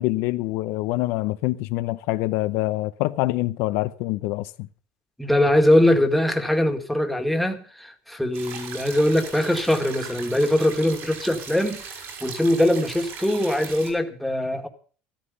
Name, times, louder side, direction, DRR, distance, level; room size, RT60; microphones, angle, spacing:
voice 1, 0.0-4.5, left 18 dB, 75° left, 0.8 m, -25 dB
voice 2, 5.2-14.7, left 1 dB, ahead, 2.0 m, -22 dB
sound 1, 8.3-13.9, right 6 dB, 60° right, 6.2 m, -38 dB
13.5 x 13.5 x 5.4 m
cardioid pair, 125°, 5 cm